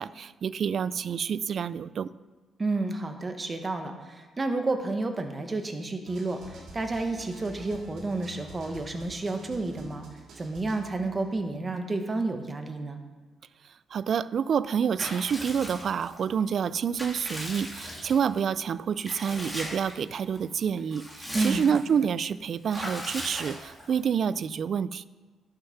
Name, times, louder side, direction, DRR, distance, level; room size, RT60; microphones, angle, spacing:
voice 1, 0.0-2.1 13.9-25.0, right 7 dB, 55° right, 17 dB, 0.3 m, -28 dB
voice 2, 2.6-10.1 10.4-13.0 21.3-21.6, right 2 dB, 25° right, 6 dB, 1.3 m, -30 dB
sound 1, 6.1-11.3, right 2 dB, 70° right, 3.0 m, -48 dB
Water / Bathtub (filling or washing) / Liquid, 15.0-16.2 16.7-18.4 19.0-20.0 20.3-20.4 20.8-21.9 22.7-24.0, equal, ahead, 2.7 m, -38 dB
11.5 x 6.6 x 5.8 m, 1.3 s
cardioid pair, 90°, 0 cm